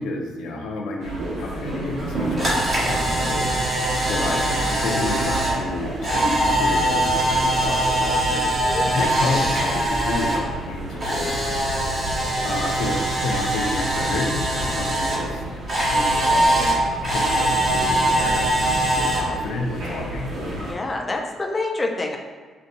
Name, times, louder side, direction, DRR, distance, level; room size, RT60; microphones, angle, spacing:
voice 1, 0.0-11.4 12.4-15.4 15.9-20.3, left 2 dB, 85° left, 1 dB, 0.5 m, -30 dB
sound 1, 1.0-20.7, right 1 dB, 75° right, 1.0 m, -32 dB
Camera, 2.0-10.4 10.7-15.2 15.7-19.2, right 1 dB, 50° right, 1.5 m, -22 dB
voice 2, 20.7-22.2, left 2 dB, 25° left, 1 dB, 0.5 m, -27 dB
5.3 x 2.6 x 2.5 m, 1.5 s
cardioid pair, 90°, 0 cm